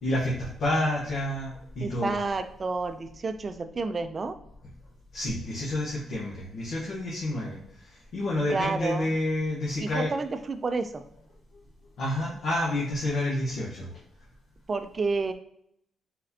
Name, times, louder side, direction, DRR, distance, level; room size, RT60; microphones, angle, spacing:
voice 1, 0.0-2.2 5.1-10.1 12.0-14.0, left 1 dB, 70° left, -5 dB, 1.1 m, -29 dB
voice 2, 1.8-4.4 8.5-9.1 9.8-11.0 14.7-15.3, right 3 dB, 35° right, 10 dB, 0.4 m, -30 dB
4.2 x 4.0 x 2.8 m, 0.71 s
cardioid pair, 115°, 0 cm